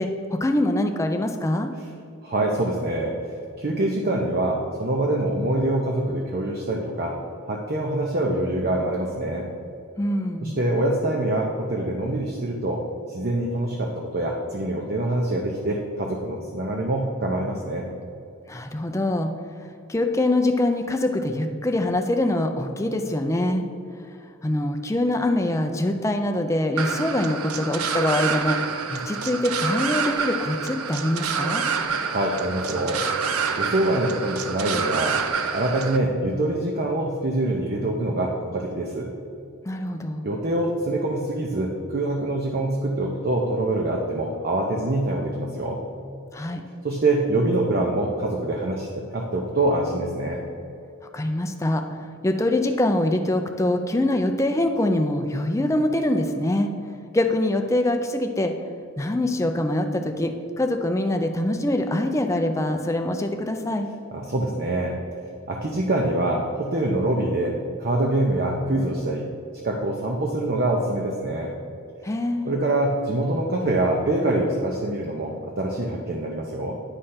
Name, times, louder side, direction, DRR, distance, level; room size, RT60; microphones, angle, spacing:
voice 1, 0.0-1.7 10.0-10.6 18.5-19.3 19.9-23.6 24.4-28.6 28.9-31.6 39.7-40.3 46.3-46.6 51.1-56.7 57.1-58.5 59.0-63.9 72.0-72.5, left 1 dB, 15° left, 5 dB, 0.4 m, -24 dB
voice 2, 2.2-3.2 3.6-7.2 7.5-9.4 10.4-17.8 32.0-33.1 33.6-35.2 35.5-39.1 40.2-45.8 46.8-50.4 64.1-65.0 65.5-69.3 69.6-71.5 72.4-76.7, right 1 dB, 45° right, 0 dB, 0.6 m, -25 dB
sound 1, 26.8-36.0, right 5 dB, 85° right, 0.5 m, -27 dB
9.8 x 3.3 x 5.7 m, 2.5 s
head